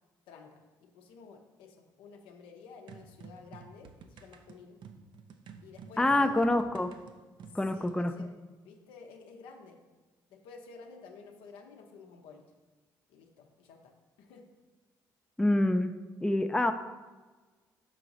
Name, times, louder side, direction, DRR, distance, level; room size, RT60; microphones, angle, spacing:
voice 1, 0.3-4.8 5.6-6.6 7.5-8.3 8.6-9.8 10.3-12.4 13.1-13.9 14.2-14.5, left 5 dB, 80° left, 3 dB, 0.8 m, -52 dB
sound 1, 2.9-8.0, right 5 dB, 60° right, 0.6 m, -51 dB
voice 2, 6.0-6.9 7.5-8.1 15.4-15.9 16.2-16.7, left 1 dB, 10° left, 7 dB, 0.5 m, -26 dB
6.2 x 4.8 x 4.0 m, 1.3 s
hypercardioid pair, 60°, 9 cm